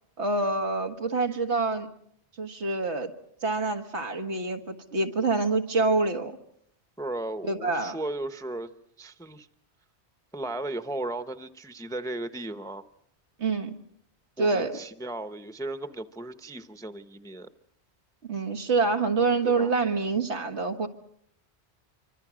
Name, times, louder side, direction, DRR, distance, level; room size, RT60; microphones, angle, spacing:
voice 1, 0.2-1.9 2.4-3.1 3.4-6.4 7.4-8.0 13.4-13.7 14.4-14.7 18.2-20.9, right 3 dB, 85° right, 5 dB, 2.1 m, -26 dB
voice 2, 7.0-8.7 9.0-9.5 10.3-12.8 14.4-17.5 19.4-19.8, right 2 dB, 5° left, 10 dB, 0.8 m, -35 dB
26.5 x 25.0 x 6.2 m, 0.69 s
omnidirectional pair, 1.1 m